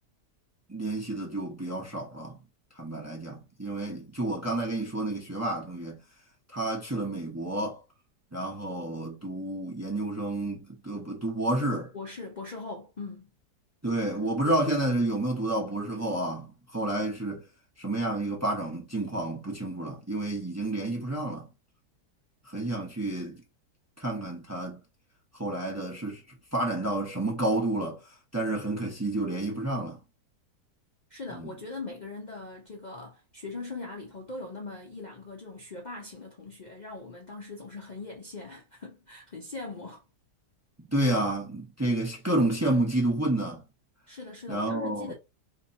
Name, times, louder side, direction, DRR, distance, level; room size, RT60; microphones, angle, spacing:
voice 1, 0.7-2.4 2.8-6.0 6.5-7.8 8.3-11.9 13.8-17.4 17.8-21.5 22.5-23.4 24.0-24.8 25.4-26.2 26.5-28.0 28.3-30.0 31.3-31.5 40.8-43.6 44.5-45.1, right 1 dB, 15° right, 0.5 m, -30 dB
voice 2, 11.9-13.3 31.1-40.0 44.1-45.1, left 3 dB, 85° left, 0.4 m, -41 dB
2.9 x 2.8 x 3.9 m
omnidirectional pair, 1.8 m